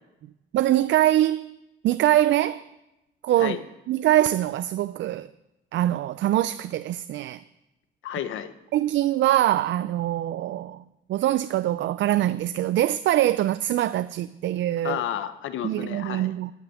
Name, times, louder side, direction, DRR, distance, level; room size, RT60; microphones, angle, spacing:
voice 1, 0.5-1.5 1.8-2.7 3.2-3.6 3.9-5.3 5.7-7.4 8.7-10.8 11.1-15.0 15.6-16.5, right 13 dB, 70° right, 0.5 m, -23 dB
voice 2, 8.0-8.5 14.8-16.3, left 10 dB, 80° left, 1.1 m, -31 dB
15.0 x 5.9 x 9.3 m
cardioid pair, 90°, 20 cm